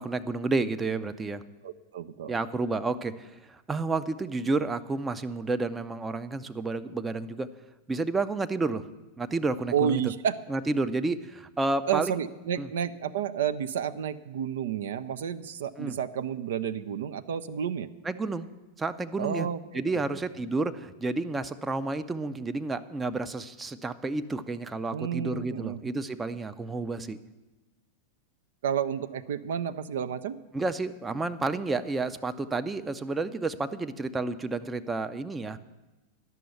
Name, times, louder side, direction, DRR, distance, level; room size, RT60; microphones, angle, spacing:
voice 1, 0.0-1.4 2.3-7.5 7.9-8.8 9.2-10.0 10.5-12.2 12.6-12.7 15.8-16.0 18.0-18.5 18.8-19.5 19.7-27.2 30.5-35.6, right 3 dB, 15° right, 10 dB, 0.6 m, -30 dB
voice 2, 1.6-2.4 9.7-10.4 11.9-17.9 19.2-19.8 20.1-20.2 24.9-25.8 28.6-30.4, right 8 dB, 60° right, 12 dB, 0.5 m, -30 dB
11.0 x 6.9 x 9.1 m, 1.1 s
figure-of-eight pair, 90°, 0 cm